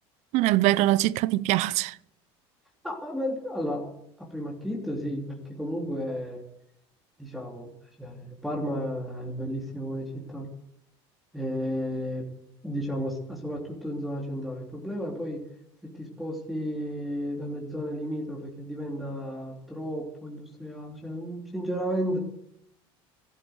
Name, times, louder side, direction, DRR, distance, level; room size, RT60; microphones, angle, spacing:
voice 1, 0.3-2.0, right 16 dB, 60° right, 0.6 m, -23 dB
voice 2, 2.8-3.9 4.2-6.4 7.2-7.7 8.0-10.5 11.3-12.3 12.6-15.4 15.8-22.2, equal, ahead, 3.2 m, -33 dB
14.5 x 12.5 x 8.1 m
supercardioid pair, 110°, 13 cm